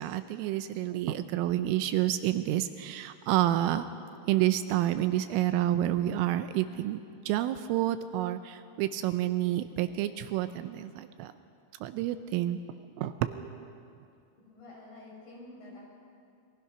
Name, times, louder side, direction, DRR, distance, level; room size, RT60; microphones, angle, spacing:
voice 1, 0.0-3.9 4.3-11.3 11.8-12.6 13.0-13.5, right 13 dB, 80° right, 10 dB, 3.2 m, -29 dB
voice 2, 14.5-15.8, left 2 dB, 45° left, -3 dB, 7.6 m, -48 dB
28.0 x 23.0 x 6.0 m, 2.5 s
omnidirectional pair, 5.9 m